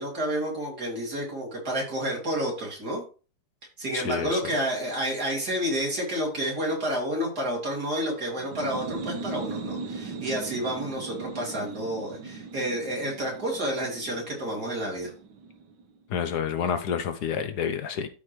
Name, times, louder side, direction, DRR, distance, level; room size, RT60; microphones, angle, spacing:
voice 1, 0.0-3.0 3.8-15.1, equal, 65° right, -2 dB, 3.8 m, -30 dB
voice 2, 3.9-4.4 16.1-18.1, left 7 dB, 75° left, 9 dB, 1.3 m, -29 dB
sound 1, 8.4-15.9, right 4 dB, 85° right, 1.6 m, -39 dB
13.0 x 5.0 x 3.2 m, 0.35 s
omnidirectional pair, 1.8 m